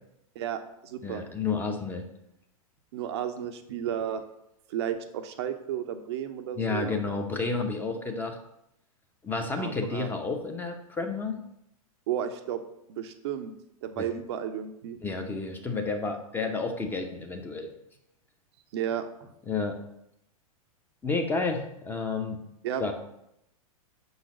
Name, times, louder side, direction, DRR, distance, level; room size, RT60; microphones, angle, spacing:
voice 1, 0.4-1.2 2.9-4.2 4.7-7.2 9.6-10.1 12.1-12.6 12.9-13.5 13.8-15.0 18.7-19.3 22.6-22.9, right 9 dB, 45° right, 7 dB, 0.6 m, -33 dB
voice 2, 1.0-2.0 6.6-8.4 9.2-11.4 14.0-14.1 15.0-17.7 19.5-19.8 21.0-22.4 22.8-22.9, left 4 dB, 10° left, 4 dB, 0.7 m, -30 dB
5.9 x 4.0 x 5.8 m, 0.80 s
figure-of-eight pair, 100°, 19 cm